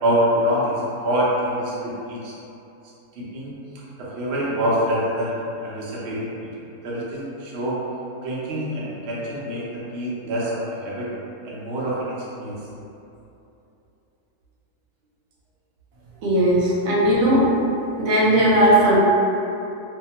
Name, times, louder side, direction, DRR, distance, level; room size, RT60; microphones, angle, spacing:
voice 1, 0.0-2.3 3.2-3.5 4.0-6.3 6.8-7.8 8.2-11.1 11.4-12.5, equal, 60° right, -7 dB, 0.7 m, -25 dB
voice 2, 16.2-17.4 18.0-19.0, right 1 dB, 85° right, -5 dB, 1.2 m, -17 dB
2.7 x 2.3 x 2.8 m, 2.8 s
omnidirectional pair, 1.7 m